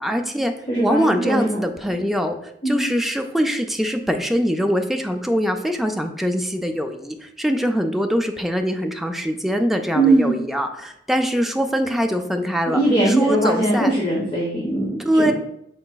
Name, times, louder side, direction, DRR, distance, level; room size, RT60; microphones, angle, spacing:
voice 1, 0.0-0.5 0.8-12.8 13.1-13.9 15.0-15.3, equal, ahead, 4 dB, 0.3 m, -23 dB
voice 2, 0.7-1.6 2.6-2.8 9.9-10.3 12.7-15.3, right 2 dB, 30° left, -5 dB, 0.9 m, -20 dB
5.2 x 3.9 x 2.2 m, 0.75 s
head